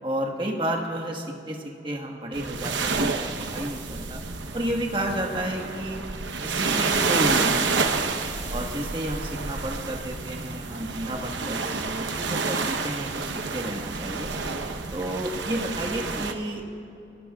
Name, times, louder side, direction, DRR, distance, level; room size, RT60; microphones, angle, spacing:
voice 1, 0.0-4.2 4.5-6.0 6.4-8.1 8.5-14.3 14.9-16.8, right 1 dB, 25° right, 1 dB, 1.5 m, -31 dB
sound 1, 2.3-16.3, right 4 dB, 85° right, 1.0 m, -29 dB
29.0 x 17.0 x 2.4 m, 2.9 s
head